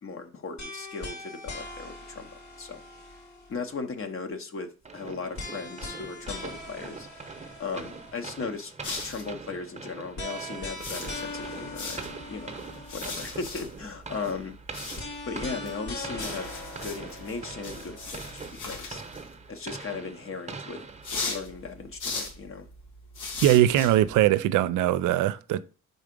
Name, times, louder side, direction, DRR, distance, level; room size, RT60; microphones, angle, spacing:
voice 1, 0.0-2.8 3.5-7.1 7.6-8.7 9.0-12.5 12.9-14.6 15.3-16.5 16.8-19.0 19.5-20.8 21.1-22.7, left 4 dB, 45° left, 0.9 m, -37 dB
sound 1, 0.6-3.7 5.4-8.3 10.2-13.3 15.0-18.4, left 2 dB, 65° left, 2.5 m, -41 dB
sound 2, 4.8-21.6, right 4 dB, 25° right, 0.8 m, -43 dB
sound 3, 8.8-9.4 10.6-19.6 21.0-24.3, left 3 dB, 85° left, 1.7 m, -39 dB
voice 2, 23.4-25.6, right 13 dB, 85° right, 0.5 m, -21 dB
4.8 x 4.0 x 5.1 m
cardioid pair, 90°, 30 cm